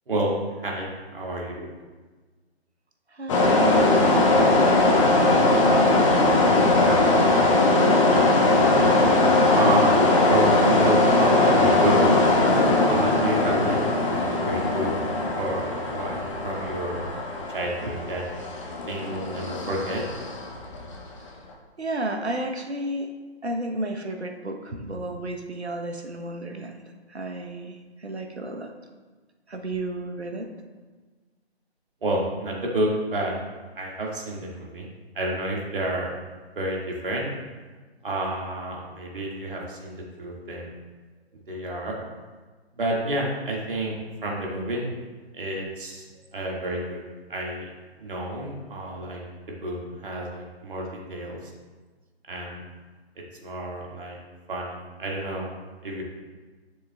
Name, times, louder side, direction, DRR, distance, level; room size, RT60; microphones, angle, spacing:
voice 1, 0.1-1.7 6.4-7.5 8.1-9.1 9.5-10.0 10.2-12.2 12.9-13.8 14.2-14.9 15.4-17.0 17.5-18.2 18.9-20.0 32.0-33.4 33.8-34.9 35.1-36.1 36.6-37.3 38.0-40.7 41.5-42.0 42.8-44.0 44.2-44.9 45.3-46.0 46.3-47.0 47.3-47.7 48.0-51.5 52.3-52.6 53.4-54.2 54.5-55.5 55.8-56.0, right 1 dB, 55° right, -2 dB, 2.0 m, -29 dB
voice 2, 3.1-5.0 21.8-23.1 23.4-26.7 27.1-28.7 29.5-30.5, right 1 dB, 80° right, 4 dB, 1.0 m, -32 dB
sound 1, 3.3-21.0, left 2 dB, 30° left, 1.0 m, -20 dB
11.0 x 6.6 x 2.3 m, 1.4 s
figure-of-eight pair, 135°, 32 cm